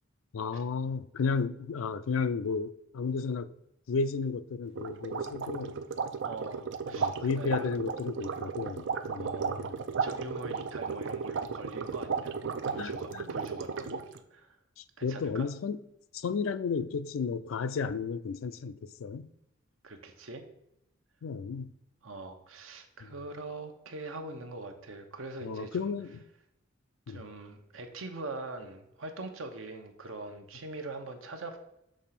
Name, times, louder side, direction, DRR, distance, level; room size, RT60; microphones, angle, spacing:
voice 1, 0.3-3.5 3.9-5.7 6.9-9.6 12.8-13.4 14.8-15.8 16.1-19.3 21.2-21.7 25.4-26.2 27.1-27.2, left 5 dB, 80° left, 0.4 m, -33 dB
sound 1, 4.7-14.2, right 5 dB, 65° right, 0.5 m, -34 dB
voice 2, 6.2-7.7 9.1-9.7 10.0-12.4 12.7-14.0 14.3-14.6 15.0-15.5 19.8-20.4 22.0-25.9 27.1-31.6, right 2 dB, 80° right, 0.9 m, -42 dB
6.3 x 3.4 x 5.7 m
head